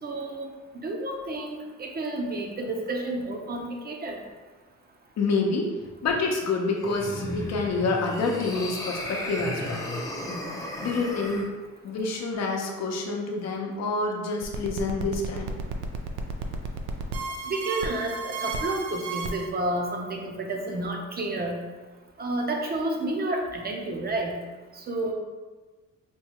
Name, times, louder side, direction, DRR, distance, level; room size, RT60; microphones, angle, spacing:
voice 1, 0.0-0.5 0.7-4.2 17.5-21.6 22.2-24.4 24.7-25.1, right 2 dB, 30° right, 1 dB, 0.7 m, -30 dB
voice 2, 5.2-5.7 6.0-9.8 10.8-11.5 11.8-15.5, left 3 dB, 60° left, 1 dB, 0.8 m, -27 dB
sound 1, 6.7-11.5, left 1 dB, 10° left, 0.6 m, -34 dB
sound 2, 14.4-19.5, right 4 dB, 85° right, 0.5 m, -33 dB
4.5 x 2.3 x 2.9 m, 1.3 s
cardioid pair, 90°, 30 cm